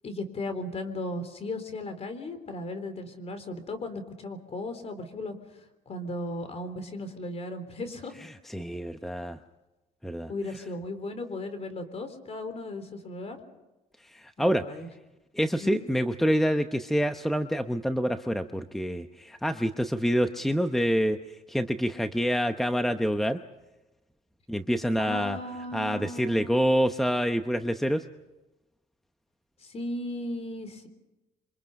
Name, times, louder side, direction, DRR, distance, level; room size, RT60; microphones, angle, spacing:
voice 1, 0.0-5.4 5.9-8.2 10.3-13.4 14.4-14.9 15.6-15.8 25.0-26.6 29.6-30.9, left 2 dB, 40° left, 9 dB, 3.8 m, -36 dB
voice 2, 8.2-9.4 10.0-10.3 14.1-14.6 15.3-21.2 21.5-23.4 24.5-25.4 25.7-28.0, equal, ahead, 8 dB, 0.9 m, -27 dB
28.0 x 24.5 x 5.4 m, 1.0 s
cardioid pair, 110°, 17 cm